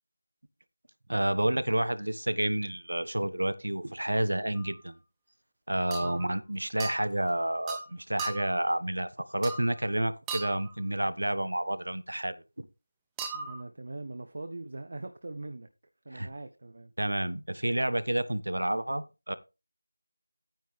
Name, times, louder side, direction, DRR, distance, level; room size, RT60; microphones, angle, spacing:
voice 1, 1.1-4.9 5.7-12.3 16.1-16.3 17.0-19.3, right 1 dB, 85° right, 1.3 m, -30 dB
sound 1, 4.6-4.7 5.9-6.3 6.8-7.0 7.7-7.9 8.2-8.6 9.4-9.8 10.3-10.7 13.2-13.6, right 5 dB, 5° right, 0.7 m, -38 dB
voice 2, 13.3-15.7 16.0-16.9, right 2 dB, 50° right, 1.0 m, -41 dB
10.5 x 9.4 x 3.4 m
figure-of-eight pair, 170°, 0 cm